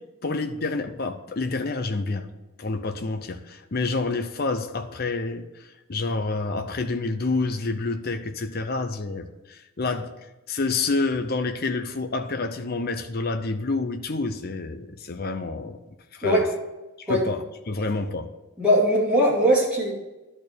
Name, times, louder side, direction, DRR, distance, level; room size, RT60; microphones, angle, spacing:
voice 1, 0.2-2.3 2.6-10.1 10.5-15.8 16.1-16.4 17.0-18.2, left 3 dB, 45° left, 7 dB, 0.7 m, -28 dB
voice 2, 18.6-19.9, equal, 5° right, -6 dB, 2.5 m, -20 dB
11.0 x 4.3 x 6.7 m, 1.1 s
head